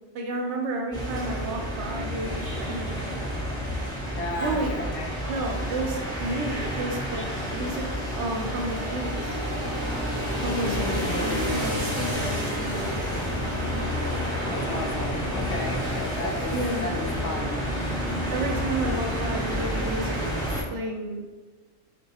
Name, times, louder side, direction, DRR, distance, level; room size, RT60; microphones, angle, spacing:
voice 1, 0.1-3.1 4.4-4.7 5.3-7.2 7.5-7.9 8.1-9.4 10.4-13.0 16.5-16.9 18.3-20.2 20.7-21.2, right 2 dB, 70° right, 0 dB, 0.9 m, -31 dB
sound 1, 0.9-20.6, equal, 5° left, 0.7 m, -29 dB
voice 2, 4.2-5.1 10.4-11.6 14.5-17.5, left 2 dB, 65° left, 1 dB, 0.8 m, -34 dB
3.8 x 2.4 x 2.8 m, 1.3 s
omnidirectional pair, 1.3 m